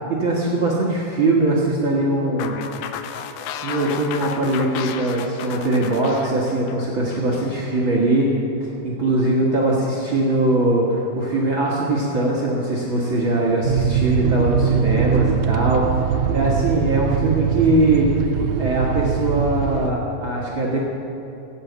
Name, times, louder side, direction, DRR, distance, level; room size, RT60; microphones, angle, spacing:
voice 1, 0.1-2.6 3.3-8.3 8.6-18.1 18.6-20.8, right 2 dB, 55° right, -5 dB, 1.5 m, -21 dB
sound 1, 2.4-7.5, left 8 dB, 85° left, 1.7 m, -33 dB
sound 2, 13.6-19.9, right 8 dB, 80° right, 1.8 m, -22 dB
14.0 x 9.2 x 8.0 m, 2.9 s
omnidirectional pair, 4.3 m